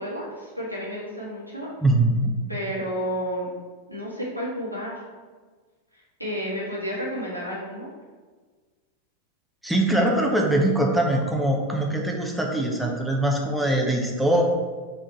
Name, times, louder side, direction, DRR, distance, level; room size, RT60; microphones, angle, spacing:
voice 1, 0.0-1.7 2.5-3.5 3.9-5.0 6.2-7.9, equal, 90° left, -6 dB, 1.9 m, -31 dB
voice 2, 1.8-2.3 9.6-14.4, right 1 dB, 5° right, 0 dB, 0.9 m, -22 dB
6.3 x 3.9 x 4.5 m, 1.4 s
figure-of-eight pair, 90°, 0 cm